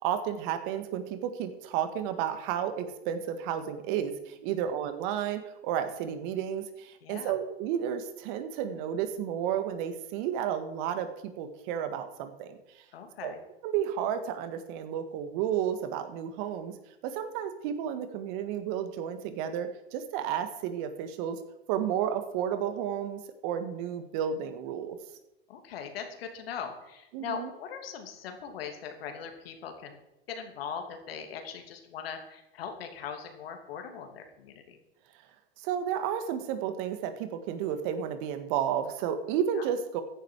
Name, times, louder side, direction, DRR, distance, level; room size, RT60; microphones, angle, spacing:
voice 1, 0.0-11.1 11.4-12.8 13.2-13.3 13.6-16.8 17.0-21.4 21.7-25.0 27.1-27.5 35.6-40.0, right 9 dB, 55° right, 9 dB, 2.0 m, -32 dB
voice 2, 7.0-7.3 12.9-13.4 25.5-30.0 30.3-34.8 39.6-39.7, left 7 dB, 70° left, 5 dB, 3.0 m, -40 dB
15.0 x 11.0 x 4.9 m, 0.89 s
hypercardioid pair, 105°, 31 cm